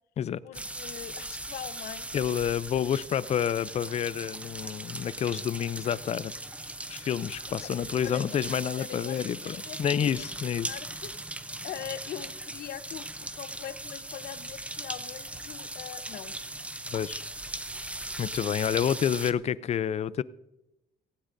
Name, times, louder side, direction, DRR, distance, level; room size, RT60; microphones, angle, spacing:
voice 1, 0.4-2.1 7.6-7.7 8.0-8.2 8.8-9.8 10.1-10.3 10.7-11.1 11.6-16.3, left 11 dB, 65° left, 0.8 m, -42 dB
sound 1, 0.5-19.3, right 1 dB, 5° right, 0.6 m, -39 dB
voice 2, 2.1-6.3 6.9-10.7 16.9-17.2 18.2-20.2, left 9 dB, 40° left, 0.5 m, -29 dB
18.0 x 16.0 x 2.6 m
cardioid pair, 110°, 17 cm